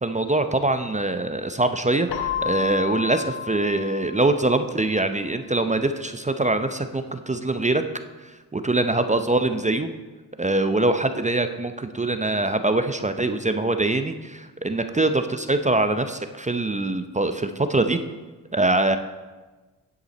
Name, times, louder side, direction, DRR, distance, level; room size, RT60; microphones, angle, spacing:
voice 1, 0.0-7.8 8.2-9.9 10.4-18.0 18.5-19.0, right 2 dB, 15° right, 8 dB, 0.6 m, -23 dB
Keyboard (musical), 2.1-4.8, left 7 dB, 90° left, 1.0 m, -31 dB
9.7 x 8.0 x 4.2 m, 1.2 s
supercardioid pair, 55°, 45 cm